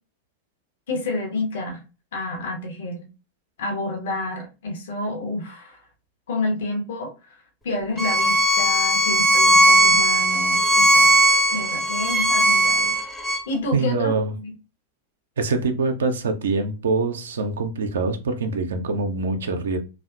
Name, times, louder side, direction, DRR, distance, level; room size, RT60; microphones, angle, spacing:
voice 1, 0.9-1.8 2.1-3.0 3.6-5.8 6.3-7.1 7.6-11.1 11.5-12.9 13.2-14.5, left 2 dB, 60° left, 0.8 m, -29 dB
Bowed string instrument, 8.0-13.4, right 1 dB, 5° left, 0.5 m, -18 dB
voice 2, 13.7-14.3 15.4-19.8, right 3 dB, 65° right, 0.4 m, -24 dB
2.7 x 2.2 x 2.3 m
figure-of-eight pair, 90°, 0 cm